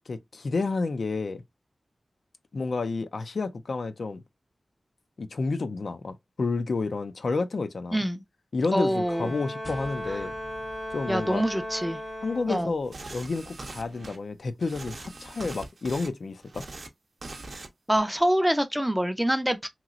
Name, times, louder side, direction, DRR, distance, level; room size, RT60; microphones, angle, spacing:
voice 1, 0.1-1.4 2.5-4.2 5.2-8.0 8.5-10.3 10.9-11.4 12.2-16.6, left 3 dB, 70° left, 0.4 m, -30 dB
voice 2, 7.9-8.2 8.7-9.4 11.1-12.0 12.5-12.7 17.9-19.7, equal, 5° right, 0.5 m, -25 dB
Bowed string instrument, 8.8-12.9, equal, 90° left, 1.4 m, -37 dB
sound 1, 9.6-14.3, equal, 30° left, 0.6 m, -50 dB
sound 2, 12.9-14.2 14.6-16.1 16.4-16.9 17.2-17.7 18.0-18.2, right 2 dB, 60° right, 0.6 m, -41 dB
3.0 x 2.9 x 2.4 m
wide cardioid pair, 85°, 0 cm